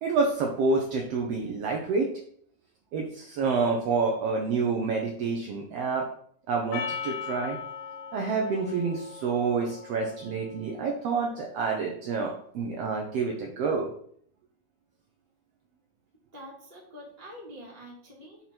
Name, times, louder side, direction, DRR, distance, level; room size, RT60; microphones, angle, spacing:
voice 1, 0.0-2.1 2.9-6.1 6.5-7.6 8.1-13.9, right 4 dB, 70° right, 0 dB, 1.6 m, -28 dB
Percussion, 6.7-11.3, left 6 dB, 80° left, 1.3 m, -39 dB
voice 2, 16.3-18.4, equal, 15° right, -4 dB, 1.5 m, -45 dB
6.0 x 4.1 x 4.2 m, 0.62 s
omnidirectional pair, 3.4 m